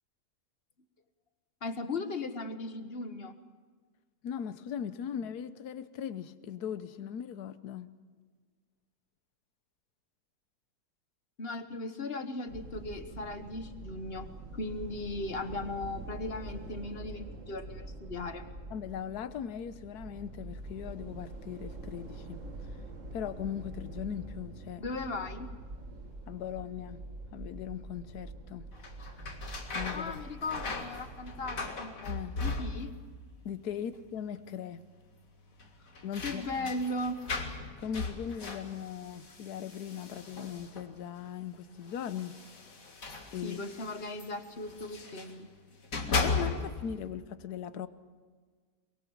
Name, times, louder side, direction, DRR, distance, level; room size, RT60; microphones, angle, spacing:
voice 1, 1.6-3.3 11.4-18.5 24.8-25.5 29.9-31.9 32.4-32.9 36.2-37.2 43.4-45.5, left 2 dB, 40° left, 1.4 m, -37 dB
voice 2, 4.2-7.9 18.7-22.8 23.1-24.8 26.3-27.0 27.3-28.7 29.7-30.2 32.0-32.4 33.4-34.8 36.0-36.7 37.8-42.4 43.3-43.7 46.1-47.9, left 8 dB, 80° left, 1.4 m, -39 dB
sound 1, 12.5-31.7, right 2 dB, 55° right, 2.1 m, -45 dB
sound 2, 28.7-33.1 33.4-34.1 34.4-34.5 35.6-41.0 41.9-45.4 45.7-46.9, left 3 dB, 60° left, 2.4 m, -37 dB
23.5 x 22.5 x 7.2 m
omnidirectional pair, 1.6 m